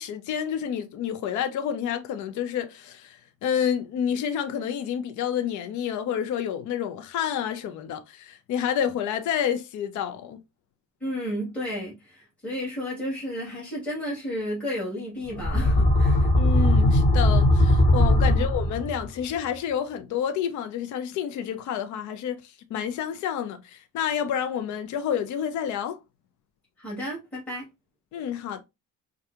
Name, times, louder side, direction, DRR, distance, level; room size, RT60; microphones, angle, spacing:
voice 1, 0.0-10.4 16.3-26.0 28.1-28.6, left 8 dB, 65° left, 0.6 m, -29 dB
voice 2, 11.0-16.3 26.8-27.6, equal, 5° left, 2.2 m, -32 dB
sound 1, 15.3-19.1, left 1 dB, 25° left, 1.2 m, -19 dB
4.7 x 2.4 x 2.8 m
cardioid pair, 90°, 31 cm